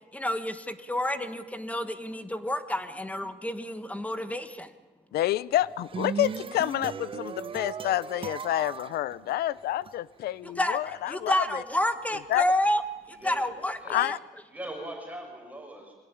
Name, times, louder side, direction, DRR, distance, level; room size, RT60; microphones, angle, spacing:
voice 1, 0.1-4.7 10.4-10.8 11.1-12.8 13.2-14.2, left 1 dB, 10° left, 11 dB, 1.5 m, -29 dB
voice 2, 5.1-11.6 12.3-12.4 13.9-14.2, left 13 dB, 70° left, 20 dB, 0.7 m, -28 dB
sound 1, 5.6-9.9, right 6 dB, 30° right, 0.9 m, -37 dB
voice 3, 13.1-13.5 13.8-14.0 14.5-15.9, right 1 dB, 10° right, 1 dB, 6.1 m, -40 dB
24.0 x 17.0 x 10.0 m, 1.2 s
cardioid pair, 110°, 17 cm